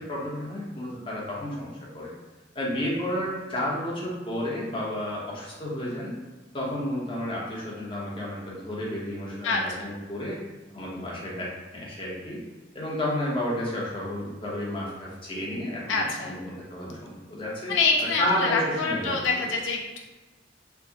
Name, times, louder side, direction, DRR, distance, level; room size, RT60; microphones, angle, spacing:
voice 1, 0.0-2.1 2.5-6.2 6.5-10.4 10.7-12.4 12.7-17.7 18.2-19.6, left 1 dB, 25° left, -5 dB, 0.8 m, -31 dB
voice 2, 9.4-9.9 15.9-16.4 17.7-20.0, left 4 dB, 80° left, 1 dB, 0.4 m, -26 dB
4.5 x 2.1 x 2.7 m, 1.2 s
head